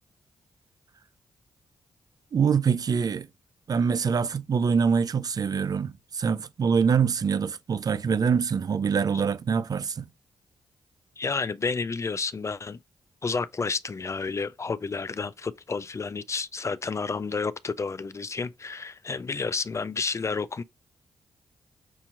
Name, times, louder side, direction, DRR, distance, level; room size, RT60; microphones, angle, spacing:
voice 1, 2.3-3.3 3.7-10.1, right 6 dB, 50° right, 0.4 m, -24 dB
voice 2, 11.2-12.8 13.2-20.6, left 4 dB, 35° left, 0.4 m, -30 dB
6.2 x 2.8 x 2.5 m
supercardioid pair, 45°, 8 cm